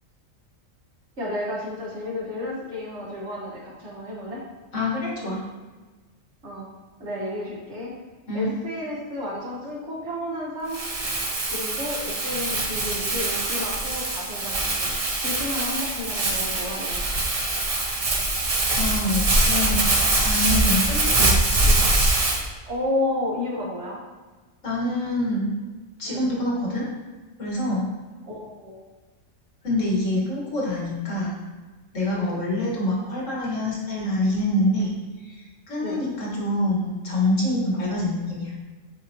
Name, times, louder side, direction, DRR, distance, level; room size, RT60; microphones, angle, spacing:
voice 1, 1.2-4.4 6.4-6.7 7.0-7.9 8.3-10.8 11.5-14.9 15.2-17.0 21.6-21.9 22.7-24.0 26.0-26.3 28.2-28.8 32.2-32.4 35.8-36.1, left 1 dB, 60° right, -4 dB, 1.7 m, -31 dB
voice 2, 4.7-5.4 8.3-8.5 12.3-12.7 18.7-21.3 24.6-25.5 26.0-26.9 27.4-27.9 29.6-31.4 31.9-34.9 35.2-35.4 35.7-38.5, left 1 dB, 75° left, -4 dB, 2.2 m, -26 dB
Crumpling crinkling, 10.7-22.4, right 2 dB, 35° right, 0.7 m, -23 dB
8.0 x 4.6 x 3.0 m, 1.3 s
omnidirectional pair, 1.3 m